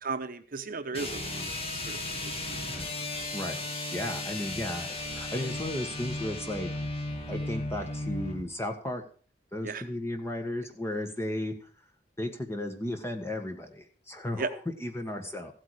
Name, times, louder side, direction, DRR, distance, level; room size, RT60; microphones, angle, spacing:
voice 1, 0.0-1.5 1.7-2.0 2.2-3.0 9.6-9.8 14.4-14.5, right 4 dB, 55° right, 9 dB, 0.9 m, -36 dB
sound 1, 0.9-8.5, left 2 dB, 35° left, 2.1 m, -35 dB
voice 2, 3.9-6.7 7.3-9.0 9.5-11.5 12.2-15.5, left 1 dB, 15° left, 5 dB, 1.7 m, -34 dB
15.0 x 8.7 x 4.9 m, 0.42 s
head